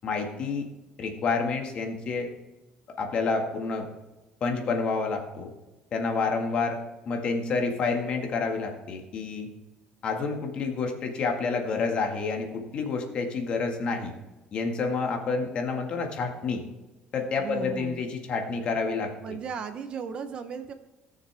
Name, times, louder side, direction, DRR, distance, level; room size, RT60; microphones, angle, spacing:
voice 1, 0.0-0.7 1.0-2.3 3.0-3.9 4.4-5.5 5.9-6.8 7.1-9.5 10.0-14.1 14.5-16.6 17.1-19.4, left 4 dB, 40° left, 3 dB, 1.8 m, -29 dB
voice 2, 17.4-18.0 19.2-20.7, right 6 dB, 40° right, 9 dB, 0.7 m, -36 dB
18.0 x 6.6 x 3.4 m, 1.1 s
cardioid pair, 155°, 3 cm